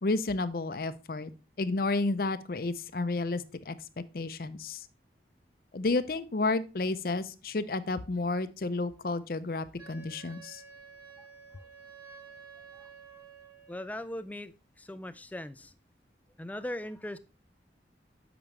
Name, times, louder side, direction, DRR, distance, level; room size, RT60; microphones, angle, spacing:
voice 1, 0.0-1.3 1.6-3.8 4.1-4.9 5.7-10.6, left 3 dB, 55° left, 13 dB, 0.6 m, -31 dB
Wind instrument woodwind instrument, 9.8-13.9, right 5 dB, 20° right, 3.0 m, -51 dB
voice 2, 13.7-14.5 14.9-15.7 16.4-17.2, left 1 dB, 10° left, 13 dB, 0.4 m, -38 dB
8.8 x 6.0 x 3.2 m, 0.33 s
head